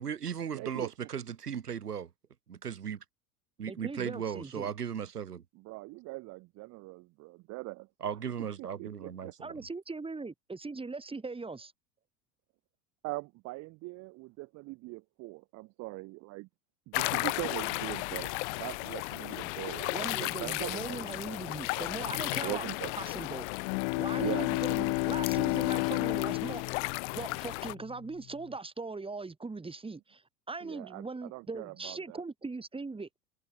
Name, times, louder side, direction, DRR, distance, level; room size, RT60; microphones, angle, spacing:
voice 1, 0.0-2.1 2.5-3.0 3.6-5.4 8.0-9.5, right 8 dB, 75° right, 2.0 m, -36 dB
voice 2, 0.5-0.9 5.5-7.9 8.6-9.3 13.0-16.5 16.9-18.3 18.6-21.4 21.9-22.9 24.2-24.9 30.6-32.2, right 22 dB, 35° right, 0.8 m, -41 dB
voice 3, 3.7-4.7 9.4-11.7 19.9-22.7 23.0-23.5 24.0-26.6 27.1-33.2, right 3 dB, 10° right, 4.1 m, -40 dB
sound 1, 16.9-27.7, left 28 dB, 50° left, 1.0 m, -35 dB
Bowed string instrument, 23.5-28.1, left 40 dB or more, 30° left, 0.4 m, -32 dB
figure-of-eight pair, 75°, 47 cm